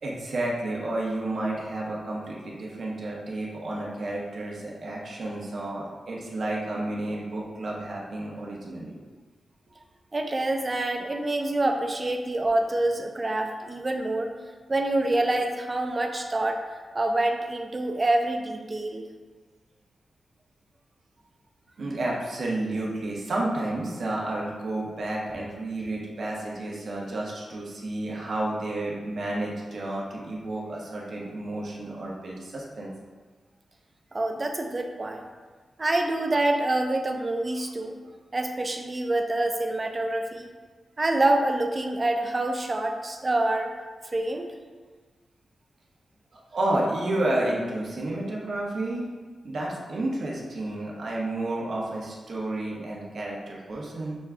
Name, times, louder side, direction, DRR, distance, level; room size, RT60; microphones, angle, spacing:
voice 1, 0.0-9.0 21.8-32.9 46.3-49.1 49.4-54.2, right 1 dB, 60° right, -3 dB, 0.9 m, -31 dB
voice 2, 10.1-14.3 14.7-19.0 34.1-35.2 35.8-38.0 38.3-40.5 41.0-43.7 44.0-44.5, right 2 dB, 25° right, 4 dB, 0.4 m, -26 dB
6.2 x 2.3 x 3.5 m, 1.4 s
wide cardioid pair, 135°, 0 cm